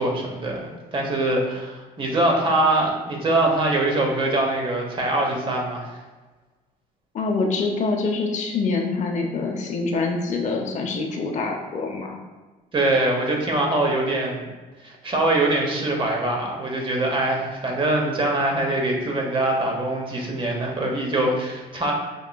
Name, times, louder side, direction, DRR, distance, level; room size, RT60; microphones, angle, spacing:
voice 1, 0.0-6.0 12.7-14.4 14.8-21.9, right 2 dB, 30° right, 0 dB, 0.9 m, -23 dB
voice 2, 7.1-12.2, left 3 dB, 45° left, 2 dB, 0.7 m, -25 dB
5.3 x 3.0 x 2.2 m, 1.3 s
cardioid pair, 110°, 17 cm